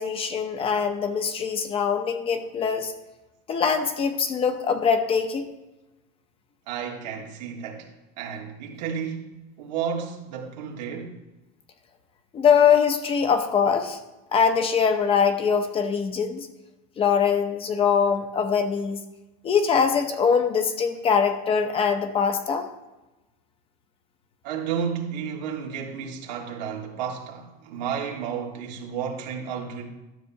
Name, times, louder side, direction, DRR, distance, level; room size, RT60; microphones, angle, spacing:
voice 1, 0.0-2.9 3.5-5.5 12.3-14.0 14.3-16.5 17.0-19.0 19.4-22.7, left 6 dB, 25° left, 0.7 m, -22 dB
voice 2, 6.7-7.9 8.2-9.3 9.6-11.1 24.4-29.9, right 7 dB, 90° right, 1.6 m, -32 dB
12.5 x 6.8 x 2.7 m
supercardioid pair, 140°, 21 cm